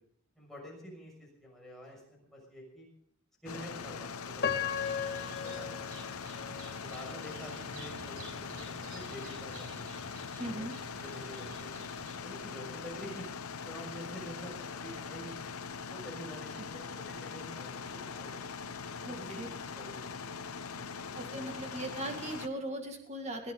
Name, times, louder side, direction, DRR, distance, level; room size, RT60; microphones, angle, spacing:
voice 1, 0.3-2.9 3.4-5.9 6.8-10.0 10.4-11.8 12.2-13.3 13.6-15.5 15.9-18.5 19.0-21.7, equal, ahead, -3 dB, 6.4 m, -48 dB
sound 1, 3.5-22.5, left 5 dB, 90° left, 0.9 m, -42 dB
Piano, 4.4-7.4 8.0-8.1 8.8-9.0, left 7 dB, 45° left, 1.1 m, -36 dB
sound 2, 4.7-12.1, right 2 dB, 90° right, 7.7 m, -52 dB
voice 2, 10.4-10.7 16.6-16.7 19.0-19.5 21.1-23.5, right 1 dB, 30° right, 4 dB, 2.3 m, -39 dB
21.0 x 15.5 x 4.0 m, 0.65 s
head